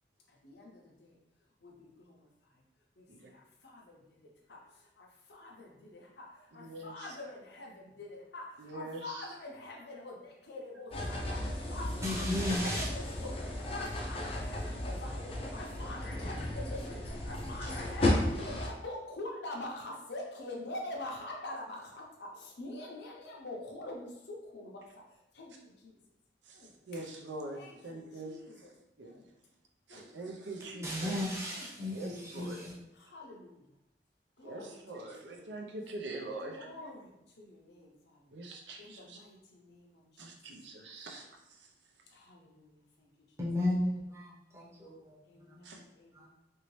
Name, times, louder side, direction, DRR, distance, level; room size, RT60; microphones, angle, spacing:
voice 1, 0.3-1.2 1.6-2.3 3.0-24.8 25.3-26.0 26.5-26.7 27.5-28.7 29.0-29.3 29.9-30.9 31.5-31.7 33.0-33.6 34.4-35.5 36.4-38.2 38.8-40.2 42.1-43.1 45.2-46.3, left 2 dB, 75° left, -1 dB, 0.7 m, -46 dB
voice 2, 6.6-7.2 8.6-9.3 17.6-17.7 26.4-29.1 29.9-31.2 31.9-32.6 34.4-36.8 38.3-39.2 40.2-41.7 45.6-45.8, right 2 dB, 85° right, 1 dB, 0.6 m, -44 dB
sound 1, 10.9-18.7, left 1 dB, 30° left, 0.4 m, -34 dB
voice 3, 12.0-12.9 30.8-32.7 43.4-45.6 46.1-46.3, left 1 dB, 15° right, -6 dB, 0.7 m, -34 dB
3.0 x 2.7 x 3.1 m, 0.90 s
head